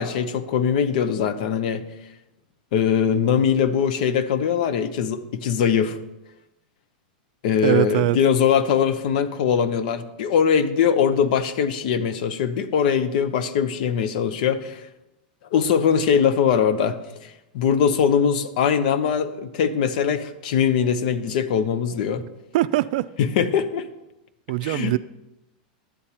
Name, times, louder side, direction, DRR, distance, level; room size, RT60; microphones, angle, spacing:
voice 1, 0.0-1.8 2.7-6.0 7.4-14.8 15.5-22.2 23.2-23.8 24.6-24.9, left 7 dB, 65° left, 0.9 m, -21 dB
voice 2, 7.6-8.2 22.2-22.3 22.5-23.1 24.5-25.0, right 17 dB, 65° right, 0.4 m, -21 dB
12.0 x 8.3 x 4.4 m
supercardioid pair, 130°, 5 cm